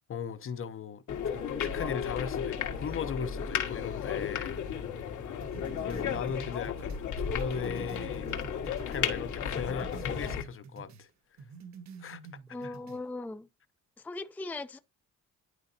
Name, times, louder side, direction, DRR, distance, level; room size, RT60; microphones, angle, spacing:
voice 1, 0.1-4.6 5.8-8.3 8.7-11.1 12.0-12.2 12.6-12.7, left 6 dB, 45° left, 0.8 m, -38 dB
sound 1, 1.1-10.4, left 7 dB, 75° left, 1.9 m, -34 dB
sound 2, 5.4-9.1 9.4-11.1 11.4-13.0, right 5 dB, 65° right, 1.0 m, -48 dB
voice 2, 12.5-13.5 14.0-14.8, left 2 dB, 5° left, 0.5 m, -39 dB
11.0 x 4.0 x 2.7 m
cardioid pair, 90°, 30 cm